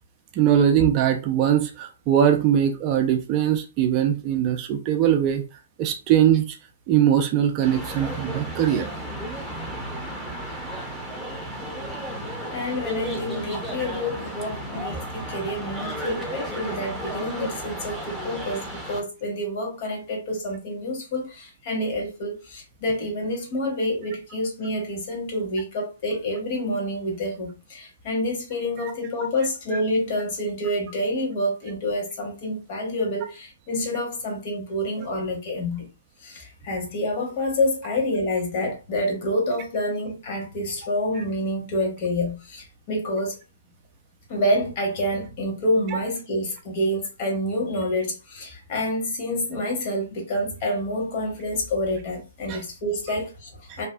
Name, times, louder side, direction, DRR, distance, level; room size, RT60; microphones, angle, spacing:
voice 1, 0.4-5.4 5.8-6.6 6.9-8.9 28.8-28.9 52.5-52.6, right 10 dB, 30° right, 0.4 m, -21 dB
sound 1, 7.6-19.0, right 1 dB, ahead, 0.7 m, -33 dB
voice 2, 12.5-35.9 36.2-43.4 44.3-53.9, left 1 dB, 40° left, 1.1 m, -28 dB
2.7 x 2.3 x 2.3 m
figure-of-eight pair, 120°, 0 cm